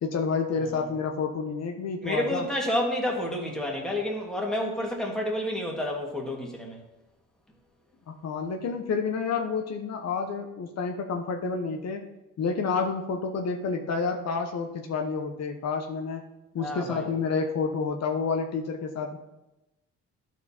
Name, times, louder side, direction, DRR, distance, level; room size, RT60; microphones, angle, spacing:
voice 1, 0.0-2.5 8.1-12.0 12.4-16.2 16.5-19.2, left 5 dB, 60° left, 4 dB, 0.9 m, -29 dB
voice 2, 2.0-6.8 16.6-17.1, left 1 dB, ahead, -1 dB, 2.0 m, -29 dB
12.0 x 4.6 x 4.3 m, 0.97 s
cardioid pair, 90°, 30 cm